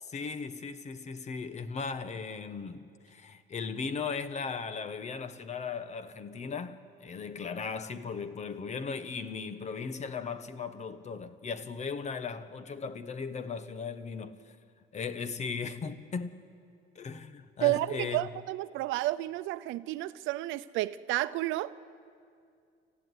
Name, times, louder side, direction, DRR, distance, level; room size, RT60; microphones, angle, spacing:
voice 1, 0.0-14.4 14.9-16.3 16.9-18.3, left 5 dB, 35° left, 1.1 m, -37 dB
voice 2, 17.6-21.7, right 16 dB, 85° right, 0.6 m, -31 dB
26.0 x 15.0 x 9.5 m
cardioid pair, 120°, 19 cm